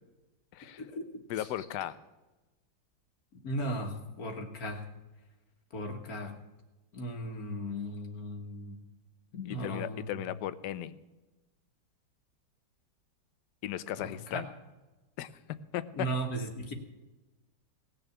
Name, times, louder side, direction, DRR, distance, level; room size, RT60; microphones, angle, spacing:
voice 1, 1.3-2.0 9.4-10.9 13.6-14.5 15.2-15.3 15.7-16.1, left 12 dB, 70° left, 14 dB, 1.3 m, -36 dB
voice 2, 3.4-4.8 5.7-6.4 6.9-8.8 9.3-10.1 14.0-14.4 16.0-16.7, right 1 dB, 50° left, 4 dB, 1.9 m, -36 dB
18.0 x 6.9 x 8.3 m, 1.1 s
omnidirectional pair, 2.1 m